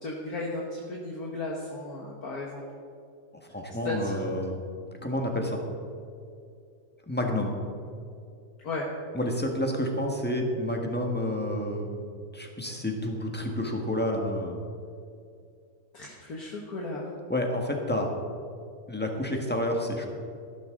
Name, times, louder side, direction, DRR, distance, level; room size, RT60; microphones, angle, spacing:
voice 1, 0.0-2.7 3.8-4.3 8.6-8.9 15.9-17.1, left 2 dB, 60° left, -2 dB, 1.7 m, -35 dB
voice 2, 3.5-4.5 5.0-5.6 7.1-7.5 9.1-12.1 12.3-14.6 17.3-18.1 18.9-20.1, left 1 dB, 5° left, 1 dB, 1.3 m, -29 dB
14.0 x 12.5 x 3.8 m, 2.4 s
omnidirectional pair, 1.9 m